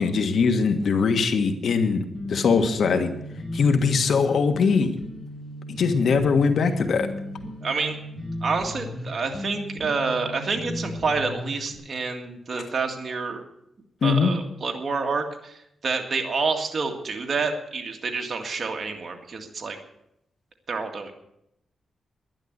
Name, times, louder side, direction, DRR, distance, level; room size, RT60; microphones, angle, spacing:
voice 1, 0.0-3.1 3.5-4.9 5.7-7.1 14.0-14.3, left 5 dB, 70° left, 7 dB, 1.5 m, -21 dB
sound 1, 2.1-11.7, left 1 dB, 10° left, 6.0 m, -35 dB
voice 2, 7.6-8.0 8.4-13.4 14.0-15.6 15.8-19.8 20.7-21.1, right 4 dB, 45° right, 3 dB, 2.0 m, -28 dB
11.5 x 11.0 x 8.1 m, 0.79 s
cardioid pair, 95°, 0 cm